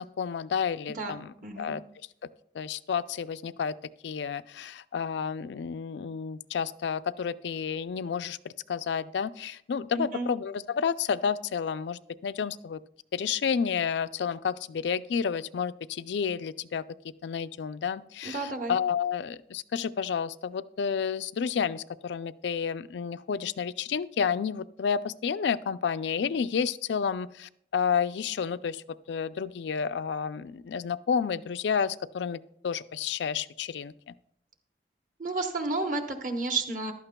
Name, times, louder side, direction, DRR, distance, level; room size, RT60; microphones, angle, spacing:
voice 1, 0.0-1.8 2.5-3.7 4.0-12.8 13.1-16.8 17.2-32.4 32.6-34.1, left 6 dB, 80° left, 15 dB, 0.4 m, -30 dB
voice 2, 0.9-1.7 9.9-10.3 18.2-18.8 35.2-36.9, right 3 dB, 45° right, 5 dB, 1.0 m, -32 dB
14.5 x 11.5 x 2.2 m, 0.70 s
head